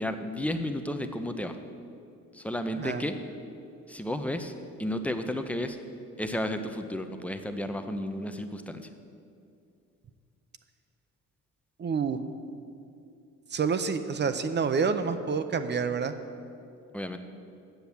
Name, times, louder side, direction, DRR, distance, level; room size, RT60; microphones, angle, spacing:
voice 1, 0.0-1.6 2.3-3.2 3.9-4.5 4.8-5.8 6.2-8.9 16.9-17.2, left 1 dB, 5° left, 7 dB, 0.6 m, -32 dB
voice 2, 11.8-12.2 13.5-16.1, right 5 dB, 35° right, 9 dB, 0.6 m, -28 dB
8.0 x 7.1 x 7.1 m, 2.5 s
cardioid pair, 90°, 30 cm